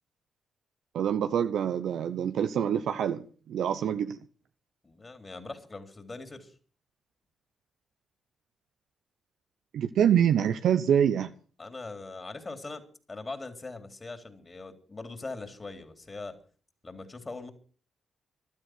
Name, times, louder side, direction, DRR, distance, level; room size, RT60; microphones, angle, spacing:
voice 1, 0.9-4.2 9.7-11.3, right 9 dB, 70° right, 0.7 m, -26 dB
voice 2, 4.8-6.5 11.6-12.8 13.1-16.4 16.8-17.5, left 3 dB, 30° left, 3.8 m, -41 dB
14.5 x 12.5 x 6.2 m
hypercardioid pair, 40°, 0 cm